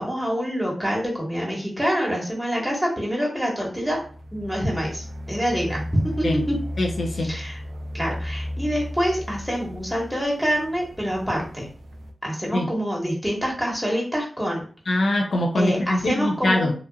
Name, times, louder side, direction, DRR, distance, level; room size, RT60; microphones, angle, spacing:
voice 1, 0.0-4.0 4.3-6.5 7.2-7.6 7.9-11.7 12.2-14.6 15.5-16.7, equal, 5° right, -3 dB, 1.3 m, -26 dB
sound 1, 3.8-12.1, equal, 80° right, 0.4 m, -35 dB
voice 2, 6.8-7.3 12.5-12.7 14.9-16.7, left 1 dB, 75° left, 2 dB, 0.5 m, -23 dB
2.9 x 2.4 x 2.2 m, 0.42 s
cardioid pair, 45°, 0 cm